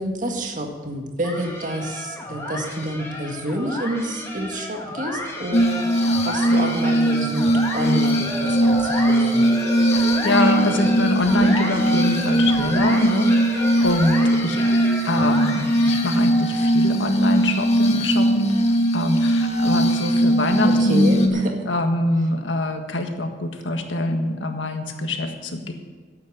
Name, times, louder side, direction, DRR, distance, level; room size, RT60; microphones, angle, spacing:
voice 1, 0.0-9.4 20.5-21.5, right 1 dB, 45° right, 3 dB, 1.8 m, -28 dB
sound 1, 1.2-16.4, left 1 dB, 15° left, 2.1 m, -32 dB
Glass, 5.5-21.3, right 1 dB, 35° left, 1.3 m, -20 dB
sound 2, 8.3-17.2, equal, 5° right, 3.3 m, -37 dB
voice 2, 9.9-14.7 15.0-18.5 18.9-21.4 21.6-25.7, left 1 dB, 80° left, 4 dB, 1.7 m, -23 dB
12.5 x 8.8 x 7.9 m, 1.4 s
head